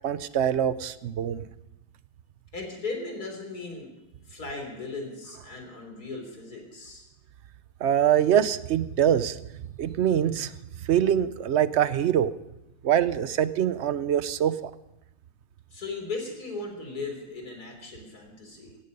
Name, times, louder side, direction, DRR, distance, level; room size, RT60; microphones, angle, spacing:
voice 1, 0.0-1.4 7.8-9.4 9.8-10.5 10.9-12.3 12.8-14.7, right 10 dB, 60° right, 15 dB, 0.8 m, -24 dB
voice 2, 2.5-3.9 4.3-7.0 15.7-18.8, left 3 dB, 80° left, 3 dB, 4.1 m, -37 dB
18.0 x 14.0 x 5.3 m, 0.91 s
omnidirectional pair, 1.6 m